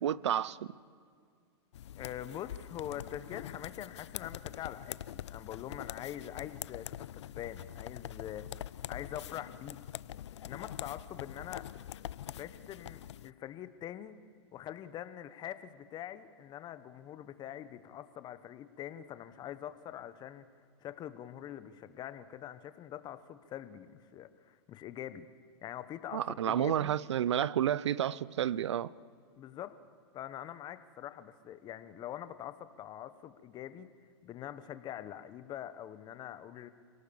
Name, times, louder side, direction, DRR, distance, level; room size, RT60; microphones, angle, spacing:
voice 1, 0.0-0.6 26.1-28.9, right 10 dB, 85° right, 0.6 m, -30 dB
sound 1, 1.7-13.3, left 11 dB, 80° left, 0.5 m, -44 dB
voice 2, 2.0-8.6 8.9-9.8 10.4-11.7 12.2-14.2 14.5-20.4 20.8-25.3 25.6-26.9 29.4-29.8 30.1-33.9 34.2-36.7, left 11 dB, 30° left, 1.1 m, -44 dB
27.5 x 18.0 x 7.1 m
hypercardioid pair, 130°, 15 cm